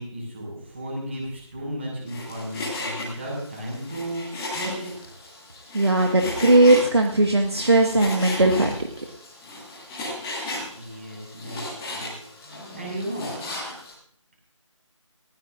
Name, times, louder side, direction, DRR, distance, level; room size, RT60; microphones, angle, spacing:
voice 1, 0.0-4.2 4.5-4.9 10.7-13.3, right 1 dB, 20° right, -1 dB, 6.1 m, -34 dB
Frying (food), 2.1-13.9, left 1 dB, 5° left, 1.7 m, -35 dB
voice 2, 5.7-8.7, right 2 dB, 55° right, 2 dB, 1.7 m, -18 dB
19.5 x 16.5 x 2.6 m, 0.64 s
figure-of-eight pair, 165°, 17 cm